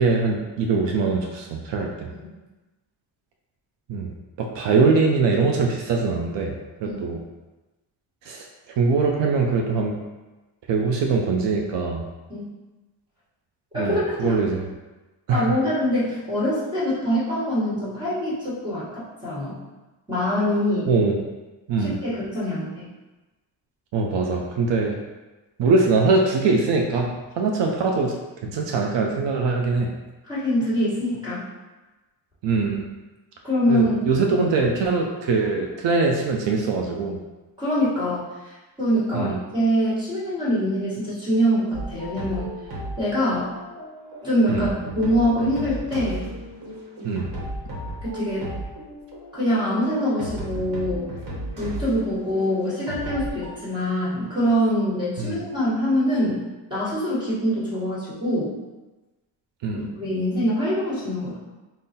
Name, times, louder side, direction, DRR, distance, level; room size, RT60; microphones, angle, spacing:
voice 1, 0.0-2.1 3.9-4.1 4.4-6.5 6.8-7.2 8.3-8.4 8.8-10.0 10.7-12.0 13.7-14.7 15.3-15.6 20.9-21.2 21.7-21.9 23.9-25.0 25.6-28.1 28.4-29.9 32.4-32.8 33.7-37.2 39.1-39.4 44.5-44.7 47.0-47.3 55.2-55.4 59.6-59.8, right 4 dB, 75° right, 1 dB, 0.5 m, -22 dB
voice 2, 13.7-14.4 15.3-19.5 20.1-20.9 21.8-22.8 30.2-31.4 33.4-34.1 37.6-38.2 38.8-42.5 43.0-43.5 44.2-46.3 48.0-48.5 49.3-51.1 51.6-56.4 56.7-58.5 59.7-61.4, equal, 10° right, -8 dB, 1.2 m, -24 dB
sound 1, 41.7-53.5, right 1 dB, 50° right, 1.0 m, -35 dB
3.8 x 2.0 x 4.0 m, 1.1 s
wide cardioid pair, 180°, 43 cm